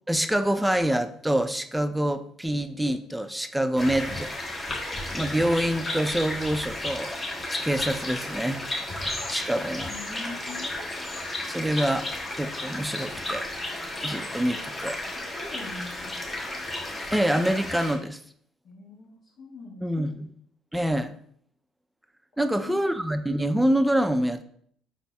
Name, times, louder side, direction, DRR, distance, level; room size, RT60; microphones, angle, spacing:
voice 1, 0.1-4.3 5.1-7.2 7.5-8.6 9.3-9.9 11.5-12.1 12.3-13.5 14.0-15.0 17.1-18.2 19.8-20.3 20.7-21.2 22.4-24.4, right 1 dB, 5° right, 8 dB, 0.5 m, -26 dB
sound 1, 3.8-17.9, left 1 dB, 25° left, 1.3 m, -33 dB
voice 2, 9.9-10.7 15.3-16.2 18.6-20.1 22.4-22.9, left 3 dB, 60° left, -6 dB, 1.4 m, -42 dB
5.5 x 4.0 x 2.3 m, 0.63 s
hypercardioid pair, 65°, 0 cm